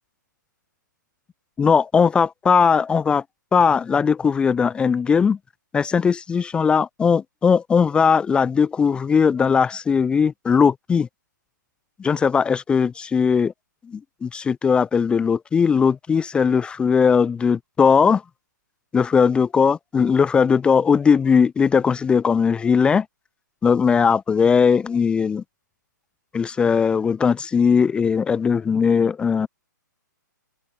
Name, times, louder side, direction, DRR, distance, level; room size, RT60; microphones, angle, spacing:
voice 1, 1.6-3.2 3.5-5.4 5.7-11.1 12.0-13.5 13.9-18.2 18.9-23.1 23.6-25.4 26.3-29.5, left 6 dB, 10° left, 0.7 m, -19 dB
open air
figure-of-eight pair, 120°, 10 cm